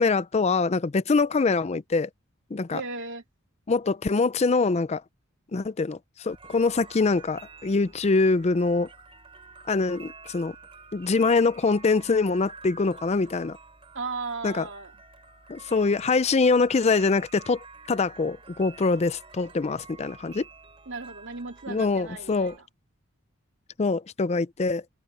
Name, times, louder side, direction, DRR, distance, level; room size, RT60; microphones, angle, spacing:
voice 1, 0.0-2.1 2.5-2.8 3.7-5.0 5.5-8.9 9.7-10.5 10.9-13.6 14.4-14.7 15.5-20.4 21.7-22.5 23.8-24.8, left 4 dB, 30° left, 0.4 m, -24 dB
voice 2, 2.7-3.2 13.9-14.9 20.9-22.7, right 3 dB, 65° right, 3.2 m, -36 dB
sound 1, 6.3-22.6, right 4 dB, 25° right, 3.7 m, -49 dB
open air
head